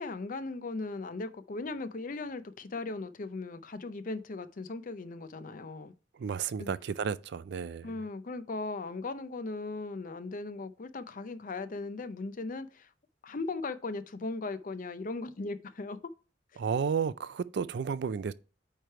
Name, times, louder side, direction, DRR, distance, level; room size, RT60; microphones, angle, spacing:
voice 1, 0.0-5.9 6.6-6.7 7.8-12.9 13.2-16.0 16.5-16.6, left 3 dB, 45° left, 0.5 m, -38 dB
voice 2, 6.2-7.9 16.6-18.3, right 6 dB, 65° right, 0.4 m, -32 dB
8.9 x 3.3 x 4.6 m
head